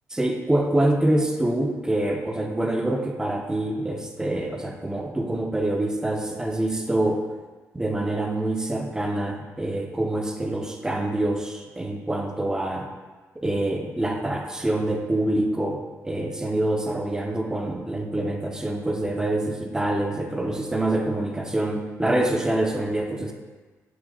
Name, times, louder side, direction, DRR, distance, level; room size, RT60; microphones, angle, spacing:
voice 1, 0.1-7.3 7.7-12.9 13.4-23.3, right 1 dB, 10° right, 3 dB, 0.5 m, -26 dB
5.9 x 2.1 x 3.8 m, 1.3 s
cardioid pair, 80°, 6 cm